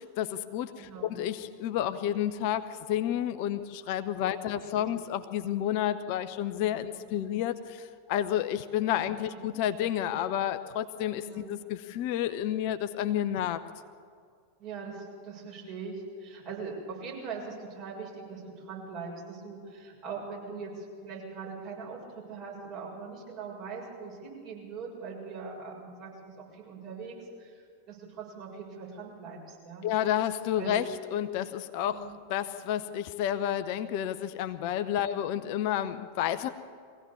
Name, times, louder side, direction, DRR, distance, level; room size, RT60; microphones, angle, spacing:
voice 1, 0.0-13.6 29.8-30.8 31.1-32.0 32.3-36.5, left 11 dB, 45° left, 11 dB, 0.8 m, -30 dB
voice 2, 0.7-1.2 4.3-4.9 6.9-7.1 9.3-9.4 11.2-11.5 13.5-13.6 14.6-29.9 30.6-30.8 31.9-32.1 35.1-35.2, right 5 dB, 40° right, -3 dB, 7.1 m, -42 dB
23.0 x 16.5 x 7.3 m, 2.2 s
figure-of-eight pair, 90°, 0 cm